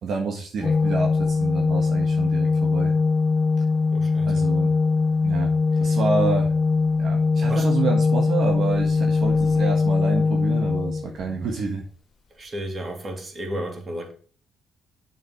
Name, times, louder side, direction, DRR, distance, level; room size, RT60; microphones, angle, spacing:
voice 1, 0.0-2.9 4.3-4.7 5.2-5.5 5.8-6.5 7.0-11.8, right 4 dB, 65° right, 2 dB, 1.7 m, -28 dB
Organ, 0.6-11.5, left 4 dB, 40° left, 0.5 m, -21 dB
voice 2, 3.9-4.4 7.5-7.7 12.3-14.1, right 1 dB, 35° right, 3 dB, 3.0 m, -33 dB
7.3 x 7.3 x 5.0 m, 0.41 s
cardioid pair, 90°, 0 cm